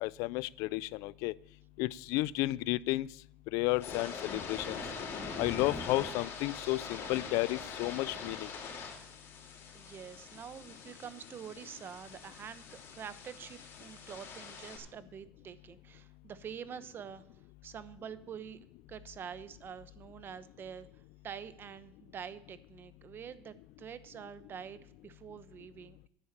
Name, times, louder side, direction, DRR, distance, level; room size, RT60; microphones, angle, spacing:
voice 1, 0.0-1.3 1.8-3.1 3.5-4.8 5.4-8.5, left 20 dB, 75° left, 22 dB, 0.4 m, -32 dB
sound 1, 3.6-14.8, left 5 dB, 50° left, 3.8 m, -43 dB
voice 2, 9.7-17.2 17.6-20.9 21.2-26.1, right 8 dB, 40° right, 14 dB, 0.9 m, -46 dB
10.0 x 7.1 x 8.8 m, 0.71 s
supercardioid pair, 105°, 6 cm